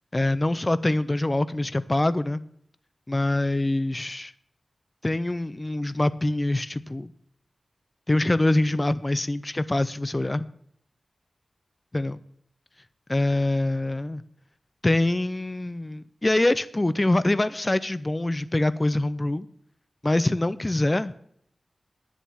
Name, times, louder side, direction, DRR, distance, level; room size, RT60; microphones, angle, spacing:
voice 1, 0.1-2.4 3.1-4.3 5.0-7.1 8.1-10.5 11.9-12.2 13.1-14.2 14.8-19.5 20.0-21.1, left 2 dB, 20° left, 14 dB, 0.4 m, -24 dB
10.5 x 7.2 x 7.1 m, 0.67 s
wide cardioid pair, 105°, 0 cm